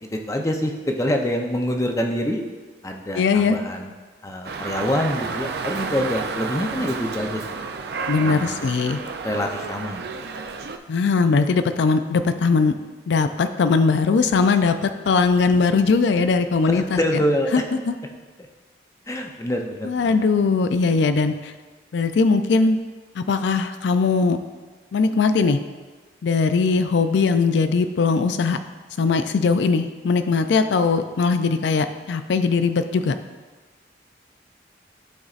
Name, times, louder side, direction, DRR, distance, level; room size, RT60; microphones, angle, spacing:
voice 1, 0.0-2.4 2.8-3.9 4.2-7.5 8.2-8.7 9.2-10.1 16.6-17.7 19.1-20.2, left 1 dB, 15° left, 2 dB, 0.5 m, -26 dB
voice 2, 3.2-3.6 8.1-9.0 10.9-12.7 13.1-17.0 17.5-17.6 17.9-18.0 19.9-21.5 21.9-22.8 23.2-24.4 24.9-25.6 26.2-28.6 29.0-33.1, left 4 dB, 70° left, 9 dB, 0.4 m, -20 dB
Dog, 4.4-10.8, right 4 dB, 55° right, 0.4 m, -31 dB
11.5 x 4.0 x 2.4 m, 1.4 s
head